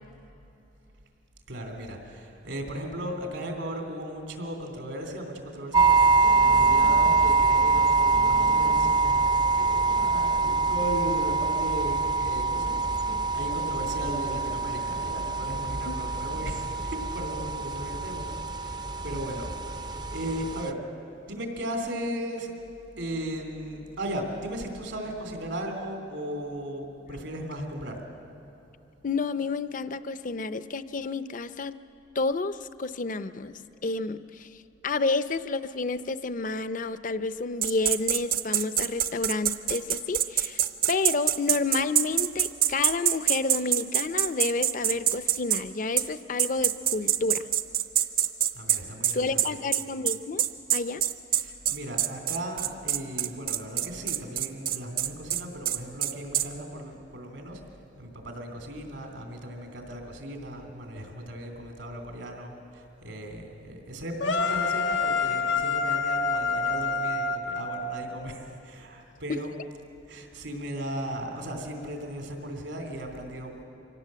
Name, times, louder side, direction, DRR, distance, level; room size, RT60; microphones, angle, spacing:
voice 1, 1.5-12.8 13.3-18.2 18.5-20.8 21.3-22.5 23.0-28.0 48.5-49.7 51.3-57.6 58.0-69.5 70.1-73.6, right 1 dB, 80° right, 3 dB, 3.1 m, -36 dB
sound 1, 5.7-20.7, right 4 dB, 25° right, 0.5 m, -24 dB
voice 2, 29.0-31.7 32.2-34.5 34.8-47.5 49.1-50.4 50.7-51.0 69.3-69.4, left 3 dB, 45° left, 13 dB, 0.6 m, -30 dB
sound 2, 37.6-45.6 46.0-46.1 46.4-56.5, right 11 dB, 55° right, 0.8 m, -25 dB
sound 3, 64.2-68.3, left 4 dB, 90° left, 1.4 m, -27 dB
25.0 x 17.5 x 7.6 m, 3.0 s
head